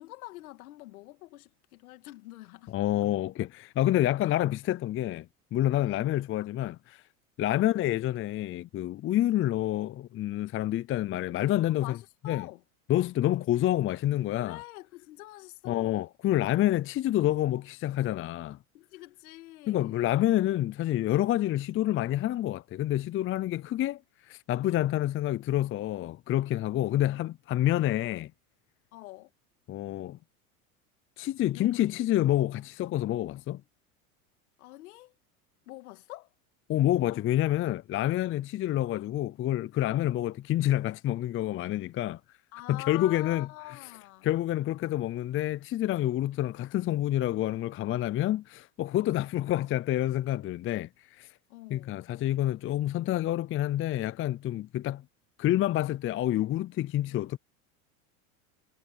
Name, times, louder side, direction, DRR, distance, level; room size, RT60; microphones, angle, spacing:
voice 1, 0.0-2.7 5.8-6.1 7.5-7.7 11.7-12.6 14.4-16.1 18.7-20.2 28.9-29.3 31.5-31.9 34.6-35.2 35.7-36.3 39.9-40.1 42.5-44.3 51.5-52.0, left 18 dB, 75° left, 2.7 m, -45 dB
voice 2, 2.7-7.0 7.4-12.0 12.2-12.5 12.9-14.6 15.7-18.6 19.7-24.0 24.3-28.3 29.7-30.2 31.2-33.6 36.7-42.2 42.7-43.5 44.2-50.9 51.2-51.3 51.7-55.0 55.4-57.4, left 13 dB, 30° left, 0.6 m, -28 dB
hypercardioid pair, 100°, 43 cm